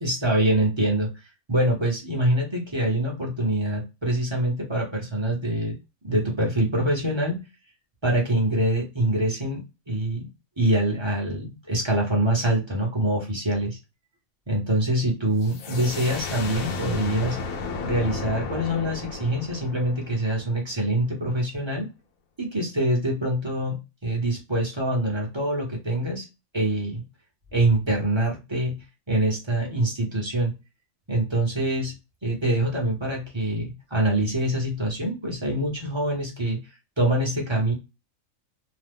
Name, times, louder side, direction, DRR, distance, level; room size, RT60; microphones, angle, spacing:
voice 1, 0.0-1.1 1.5-5.8 6.0-7.4 8.0-10.3 10.6-13.8 14.5-17.4 17.8-21.9 22.4-26.3 26.5-27.0 27.5-28.8 29.1-30.5 31.1-31.9 32.2-36.6 37.0-37.7, right 1 dB, 25° right, -1 dB, 0.8 m, -25 dB
sound 1, 15.4-20.9, left 4 dB, 90° left, 1.1 m, -34 dB
2.9 x 2.2 x 3.4 m, 0.27 s
omnidirectional pair, 1.4 m